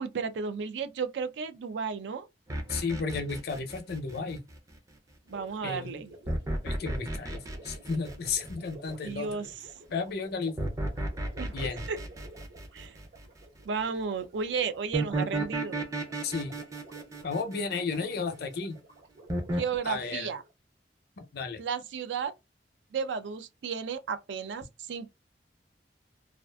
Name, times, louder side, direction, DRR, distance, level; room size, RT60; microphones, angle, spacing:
voice 1, 0.0-2.3 5.3-6.1 9.0-9.5 11.4-11.6 11.9-12.0 12.7-13.0 13.6-15.8 19.6-20.4 21.6-22.3 22.9-24.6 24.9-25.1, right 5 dB, 90° right, 0.4 m, -33 dB
sound 1, 2.5-4.7 6.3-8.9 10.6-13.4 14.9-18.3 19.3-19.6, right 1 dB, 20° right, 0.4 m, -34 dB
voice 2, 2.7-4.4 5.6-6.0 6.6-9.3 9.9-10.7 11.5-11.8 16.2-16.6 17.2-18.8 19.8-20.3 21.2-21.6, left 4 dB, 60° left, 0.5 m, -33 dB
Gurgling, 5.2-20.5, right 2 dB, 70° right, 1.0 m, -52 dB
2.4 x 2.4 x 2.2 m
head